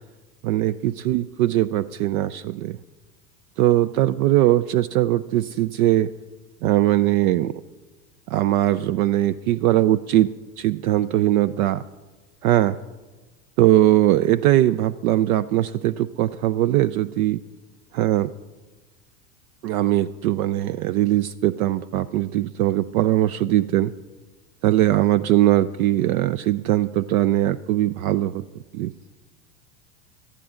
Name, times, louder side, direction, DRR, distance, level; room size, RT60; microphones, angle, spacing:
voice 1, 0.4-2.8 3.6-6.1 6.6-7.5 8.3-11.8 12.4-12.8 13.6-17.4 18.0-18.3 19.6-23.9 24.6-28.4 28.7-28.9, right 14 dB, 60° right, 14 dB, 0.6 m, -20 dB
18.5 x 13.5 x 3.7 m, 1.3 s
hypercardioid pair, 90°, 49 cm